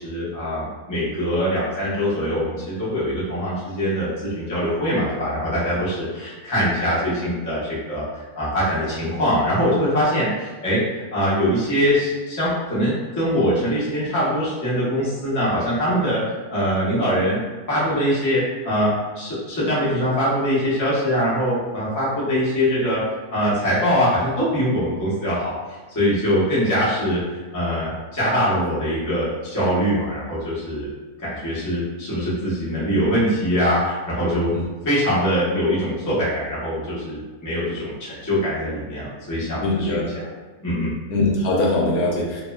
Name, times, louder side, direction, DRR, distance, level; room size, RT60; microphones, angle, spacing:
voice 1, 0.0-16.2 16.5-17.4 17.7-23.0 23.3-30.9 31.2-34.5 34.8-40.0 40.6-40.9, equal, 25° left, -9 dB, 0.4 m, -23 dB
voice 2, 39.6-40.1 41.1-42.4, left 2 dB, 75° left, -3 dB, 1.0 m, -21 dB
2.7 x 2.1 x 2.3 m, 1.3 s
omnidirectional pair, 1.6 m